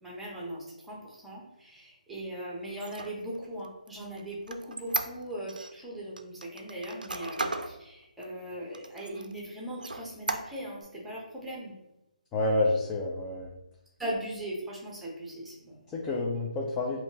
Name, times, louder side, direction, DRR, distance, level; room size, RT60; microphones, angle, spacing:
voice 1, 0.0-11.7 14.0-15.8, right 1 dB, 5° right, -4 dB, 0.9 m, -39 dB
Squeak, 2.7-5.7 6.2-7.7 8.2-8.3 8.7-9.4 9.8-10.8, right 2 dB, 85° right, 0.4 m, -35 dB
voice 2, 12.3-13.5 15.9-17.0, left 2 dB, 15° left, -3 dB, 0.4 m, -28 dB
4.2 x 2.8 x 2.9 m, 0.92 s
figure-of-eight pair, 150°, 4 cm